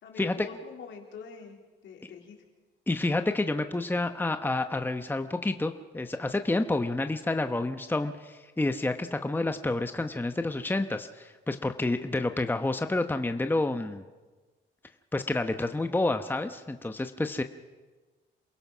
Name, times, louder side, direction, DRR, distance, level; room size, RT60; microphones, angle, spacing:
voice 1, 0.0-1.6 1.8-2.4, left 5 dB, 70° left, 1 dB, 3.9 m, -45 dB
voice 2, 2.9-14.0 15.1-17.4, left 2 dB, 10° left, 8 dB, 1.0 m, -29 dB
27.5 x 17.0 x 6.2 m, 1.3 s
cardioid pair, 90°, 20 cm